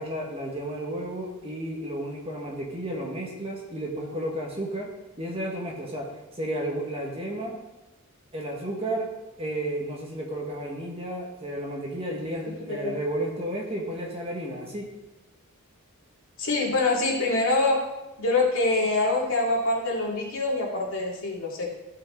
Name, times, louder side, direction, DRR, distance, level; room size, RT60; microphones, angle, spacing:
voice 1, 0.0-4.9 5.2-7.6 8.3-9.1 9.4-14.9, right 1 dB, 25° right, -1 dB, 1.7 m, -32 dB
voice 2, 16.4-17.9 18.2-21.7, left 2 dB, 65° left, -3 dB, 2.7 m, -25 dB
14.0 x 5.7 x 3.9 m, 1.1 s
head